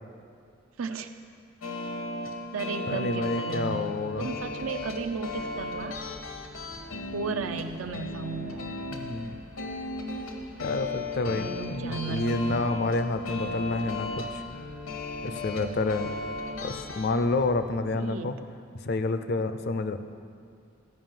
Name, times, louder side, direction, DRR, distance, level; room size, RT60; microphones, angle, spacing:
voice 1, 0.8-1.1 2.5-6.0 7.1-8.7 11.3-12.9 17.9-18.4, right 4 dB, 90° right, 6 dB, 0.5 m, -35 dB
sound 1, 1.6-17.1, left 2 dB, 80° left, 1.0 m, -36 dB
voice 2, 2.9-4.3 8.9-9.4 10.6-14.4 15.2-16.1 16.6-18.4 18.8-20.0, left 2 dB, 50° left, 11 dB, 0.4 m, -29 dB
sound 2, 4.1-17.8, right 1 dB, 65° right, 1.2 m, -51 dB
13.0 x 5.4 x 7.5 m, 2.3 s
head